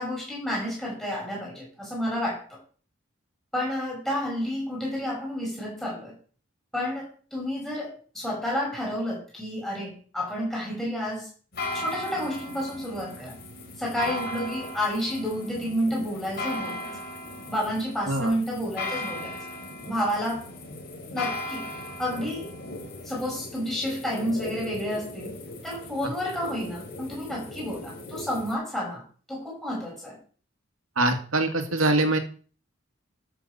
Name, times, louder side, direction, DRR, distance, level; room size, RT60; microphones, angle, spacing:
voice 1, 0.0-2.6 3.5-6.1 6.7-11.3 11.7-13.4 13.8-16.9 17.5-19.3 19.9-20.5 21.1-22.5 23.0-29.0 29.3-30.2, equal, ahead, -4 dB, 7.3 m, -30 dB
sound 1, 11.5-28.5, left 2 dB, 50° left, 3.9 m, -37 dB
voice 2, 31.0-32.2, right 2 dB, 85° right, 5 dB, 2.3 m, -23 dB
13.0 x 7.0 x 6.9 m, 0.41 s
head